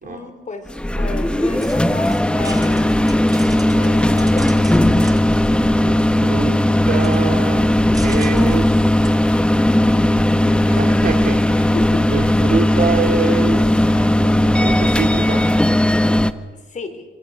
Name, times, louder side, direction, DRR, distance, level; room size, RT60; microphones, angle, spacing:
voice 1, 0.0-2.9 3.7-5.2 11.7-12.1 16.7-17.0, left 4 dB, 40° left, 8 dB, 4.3 m, -33 dB
sound 1, 0.7-16.3, left 1 dB, 5° left, 1.3 m, -16 dB
sound 2, 1.6-9.1, right 2 dB, 20° right, 3.3 m, -40 dB
voice 2, 5.6-7.7 8.0-8.7 10.7-11.6 12.1-13.6 14.2-15.5, right 5 dB, 45° right, 4 dB, 3.9 m, -25 dB
sound 3, 7.1-16.1, left 6 dB, 65° left, 5.5 m, -45 dB
26.5 x 26.5 x 6.6 m, 1.3 s
cardioid pair, 90°, 20 cm